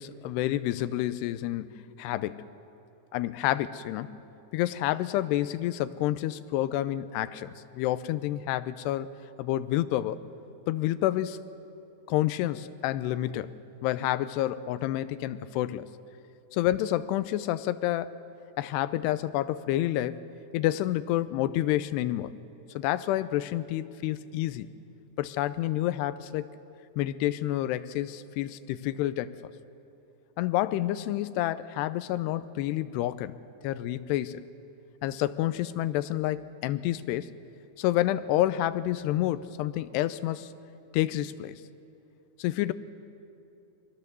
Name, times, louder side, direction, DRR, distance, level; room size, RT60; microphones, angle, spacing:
voice 1, 0.0-2.4 3.1-4.2 4.5-9.1 9.4-10.2 10.7-11.4 12.1-13.6 13.8-15.9 16.5-18.1 18.6-20.2 20.5-22.3 22.7-24.7 25.2-26.5 27.0-29.5 30.4-33.4 33.6-34.5 35.0-37.3 37.8-40.5 40.9-41.6 42.4-42.7, left 14 dB, 90° left, 14 dB, 2.8 m, -29 dB
25.0 x 20.5 x 6.9 m, 2.7 s
omnidirectional pair, 4.7 m